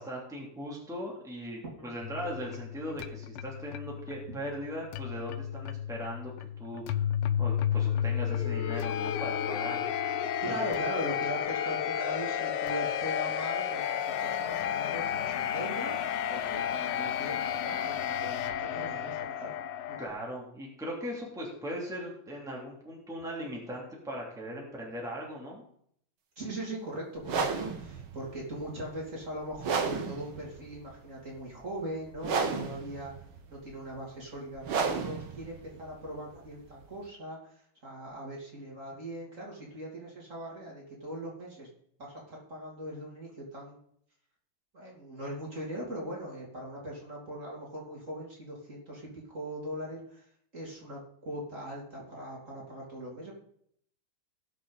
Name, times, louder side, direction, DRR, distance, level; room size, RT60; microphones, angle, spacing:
voice 1, 0.0-6.3 6.6-7.0 7.4-9.8 10.4-10.6 20.0-25.6, equal, ahead, -3 dB, 3.0 m, -39 dB
sound 1, 2.0-20.1, left 9 dB, 85° left, 1.6 m, -32 dB
voice 2, 10.4-16.0 16.3-19.5 19.9-20.1 26.4-33.1 33.5-37.6 37.8-41.7 42.0-43.8 44.7-50.2 50.5-53.3, right 1 dB, 35° right, -3 dB, 3.4 m, -40 dB
sound 2, 27.2-37.1, right 5 dB, 70° right, 2.0 m, -34 dB
19.5 x 6.6 x 4.2 m, 0.67 s
omnidirectional pair, 2.4 m